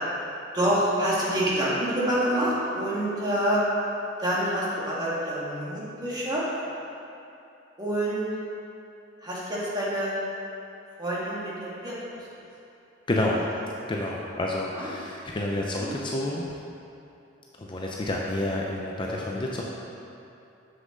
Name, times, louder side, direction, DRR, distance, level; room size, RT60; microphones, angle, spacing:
voice 1, 0.5-3.6 4.2-6.4 7.8-8.3 9.2-10.2 11.0-12.0 14.7-14.9 15.7-15.9, right 1 dB, 20° right, -7 dB, 1.7 m, -27 dB
voice 2, 13.1-13.4 13.9-16.5 17.6-19.6, left 1 dB, 25° left, -3 dB, 0.5 m, -29 dB
7.4 x 6.5 x 3.8 m, 2.7 s
head